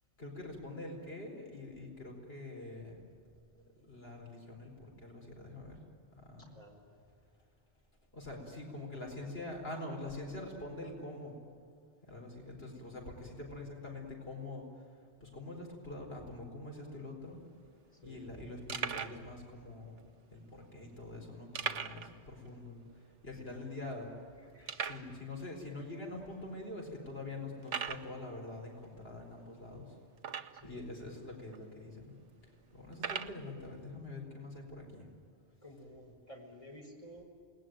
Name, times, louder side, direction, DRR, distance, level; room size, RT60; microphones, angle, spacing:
voice 1, 0.2-3.0 3.5-5.8 6.2-6.5 8.1-11.4 12.1-17.4 18.0-20.0 20.3-24.1 24.8-29.9 30.6-32.1 32.7-35.1, left 2 dB, 60° left, 0 dB, 4.8 m, -45 dB
voice 2, 6.4-6.8 18.0-18.4 23.4-23.6 24.5-25.2 30.6-30.9 35.6-37.2, equal, 30° left, 0 dB, 4.9 m, -53 dB
sound 1, 17.2-17.3 17.5-17.7 18.2-18.3 18.7-19.2 20.0-20.1 21.5-22.1 22.4-22.5 23.0-23.1 23.6-23.7 24.7-25.1 25.9-26.0 26.6-26.7 27.6-28.1 30.2-30.7 31.5-31.6 32.9-33.4, right 6 dB, 85° right, 1.3 m, -38 dB
28.0 x 20.0 x 9.2 m, 2.4 s
omnidirectional pair, 1.2 m